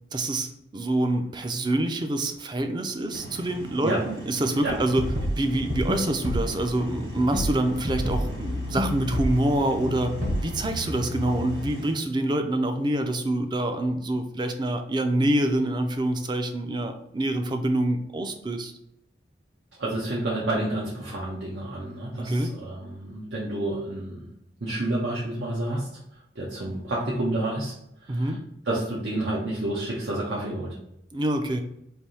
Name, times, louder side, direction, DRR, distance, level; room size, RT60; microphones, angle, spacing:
voice 1, 0.1-5.1 5.4-10.1 10.4-18.7 22.2-22.5 28.1-28.4 31.1-31.6, right 1 dB, 25° right, 6 dB, 0.4 m, -26 dB
sound 1, 2.4-2.5 3.2-3.5 4.5-4.6 6.4-6.7 7.3-11.7, left 1 dB, 55° left, 0.3 m, -36 dB
sound 2, 3.1-11.9, right 1 dB, 60° right, 1.5 m, -40 dB
sound 3, 4.7-8.4 8.7-8.9 9.1-9.5 9.9-10.6, equal, 45° right, 1.0 m, -29 dB
voice 2, 19.8-24.3 24.6-25.9 26.4-27.7 28.1-28.4 28.7-30.8, right 1 dB, 80° right, -5 dB, 0.9 m, -29 dB
3.4 x 2.6 x 4.2 m, 0.79 s
head